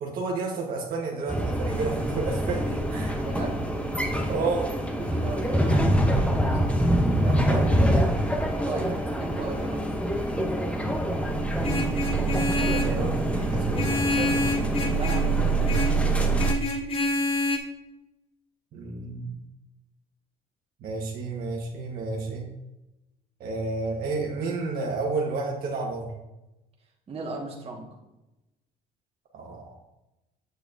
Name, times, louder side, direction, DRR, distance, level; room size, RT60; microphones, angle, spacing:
voice 1, 0.0-3.1 4.3-4.7 7.4-7.7 8.7-8.8 12.1-14.5 18.7-19.3 20.8-22.5 23.4-26.1 29.3-29.7, right 3 dB, 65° right, -2 dB, 1.4 m, -31 dB
sound 1, 1.3-16.5, right 1 dB, 5° left, 0.9 m, -25 dB
voice 2, 3.2-3.6 5.0-6.6 7.2-8.0 8.6-9.8 14.9-15.9 27.1-27.9, right 3 dB, 35° right, -1 dB, 1.7 m, -37 dB
Vehicle horn car horn honking, 11.6-13.0 13.8-15.3 15.7-16.0 16.4-17.6, left 2 dB, 35° left, 1.2 m, -28 dB
8.1 x 6.7 x 2.7 m, 0.97 s
cardioid pair, 110°, 17 cm